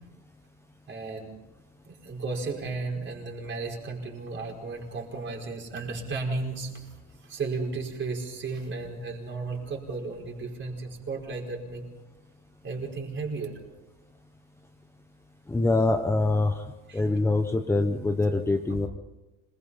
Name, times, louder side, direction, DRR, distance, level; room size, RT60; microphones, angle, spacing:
voice 1, 0.9-1.3 1.9-6.8 7.2-11.8 12.6-13.6 16.9-17.0 18.7-18.8, right 3 dB, 30° right, 0 dB, 5.1 m, -34 dB
voice 2, 15.5-16.7 16.9-18.9, left 2 dB, 5° left, 5 dB, 0.9 m, -24 dB
26.5 x 20.5 x 5.7 m, 1.1 s
cardioid pair, 150°, 35 cm